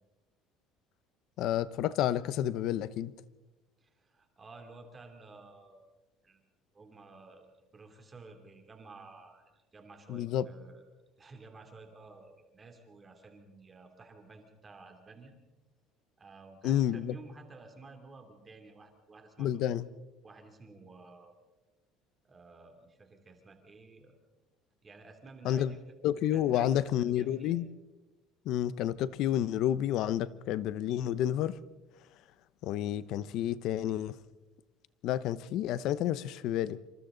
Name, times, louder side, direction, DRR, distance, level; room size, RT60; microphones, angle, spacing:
voice 1, 1.4-3.1 10.1-10.5 16.6-17.1 19.4-19.9 25.4-25.7 26.0-27.7 28.5-31.6 32.6-34.2 35.0-36.8, left 11 dB, 50° left, 0.8 m, -30 dB
voice 2, 3.8-5.8 6.2-6.4 6.7-9.4 9.7-10.8 11.2-15.3 16.2-19.9 20.2-21.3 22.2-24.2 24.8-25.8 26.3-27.6, right 3 dB, 15° right, 2.8 m, -53 dB
27.0 x 26.5 x 3.9 m
cardioid pair, 175°, 0 cm